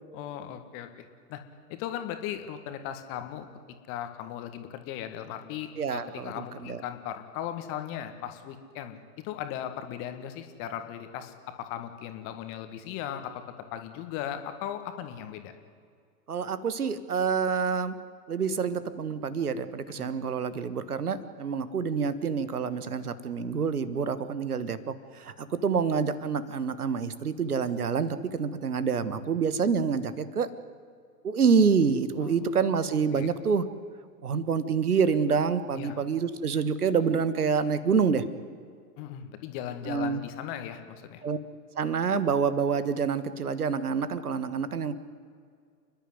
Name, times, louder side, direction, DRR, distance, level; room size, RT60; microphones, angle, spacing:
voice 1, 0.1-1.4 1.7-3.5 3.9-15.5 20.0-20.1 32.2-32.5 33.1-33.3 35.7-36.0 39.0-41.2, left 10 dB, 25° left, 8 dB, 1.7 m, -37 dB
voice 2, 5.8-6.8 16.3-18.0 18.3-30.5 31.2-33.6 34.2-38.2 39.9-40.2 41.2-41.4 41.7-44.9, right 6 dB, 65° right, 14 dB, 1.4 m, -27 dB
30.0 x 11.0 x 9.6 m, 2.1 s
figure-of-eight pair, 110°, 48 cm